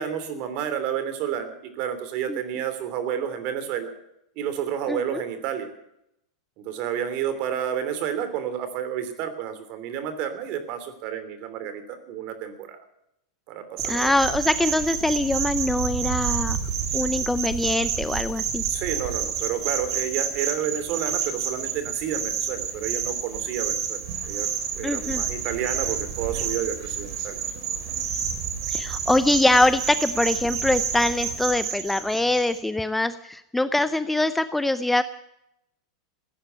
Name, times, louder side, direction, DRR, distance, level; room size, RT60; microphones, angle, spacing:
voice 1, 0.0-3.9 4.4-5.7 6.6-12.8 13.5-14.1 18.7-24.5 24.7-27.4, right 9 dB, 50° right, 10 dB, 3.0 m, -30 dB
voice 2, 4.9-5.2 13.8-16.6 16.9-18.6 24.8-25.2 28.7-35.0, left 2 dB, 5° left, 12 dB, 0.6 m, -23 dB
sound 1, 13.8-32.6, right 7 dB, 65° right, 3.2 m, -29 dB
15.5 x 10.5 x 9.2 m, 0.80 s
supercardioid pair, 130°, 3 cm